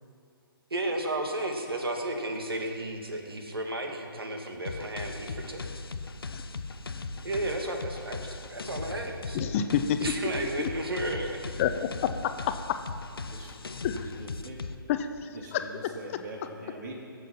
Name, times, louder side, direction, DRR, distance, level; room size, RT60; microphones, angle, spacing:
voice 1, 0.7-5.6 7.2-9.4 10.0-11.5, right 1 dB, 75° right, 3 dB, 2.2 m, -33 dB
sound 1, 4.6-14.7, left 3 dB, 75° left, 0.8 m, -38 dB
voice 2, 9.3-10.0 10.6-10.7 11.6-12.3 13.8-14.1 14.9-15.6, left 9 dB, 35° left, 9 dB, 0.8 m, -28 dB
voice 3, 13.3-14.6 15.3-16.9, right 1 dB, 50° right, -2 dB, 3.6 m, -44 dB
20.5 x 7.5 x 5.8 m, 2.3 s
figure-of-eight pair, 135°, 12 cm